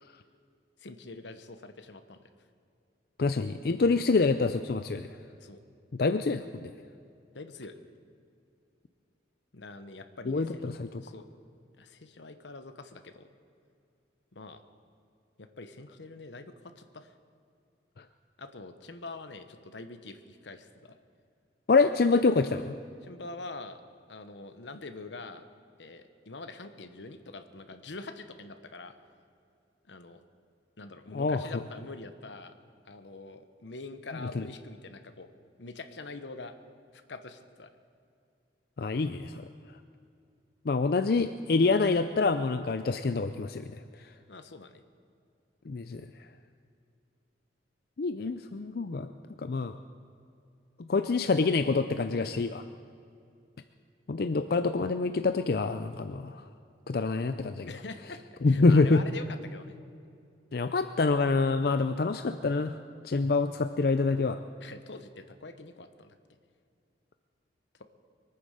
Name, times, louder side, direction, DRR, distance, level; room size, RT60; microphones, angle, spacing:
voice 1, 0.8-2.2 5.4-5.6 7.3-7.7 9.5-10.7 11.0-11.3 11.8-13.3 14.3-14.6 15.4-17.1 18.4-21.0 23.0-23.8 24.1-25.4 25.8-28.9 29.9-30.2 30.8-32.5 32.9-35.3 35.6-36.5 36.9-37.7 44.3-44.8 57.7-59.8 64.6-66.1, left 3 dB, 85° left, 9 dB, 1.0 m, -44 dB
voice 2, 3.2-5.1 5.9-6.7 10.3-10.9 21.7-22.7 31.1-31.6 34.3-34.5 38.8-39.4 40.7-43.7 45.7-46.0 48.0-49.1 49.4-49.8 50.9-52.6 54.1-56.4 56.9-57.7 58.4-59.0 60.5-62.8 63.0-64.4, left 3 dB, 55° left, 9 dB, 0.5 m, -26 dB
23.5 x 9.5 x 6.5 m, 2.5 s
head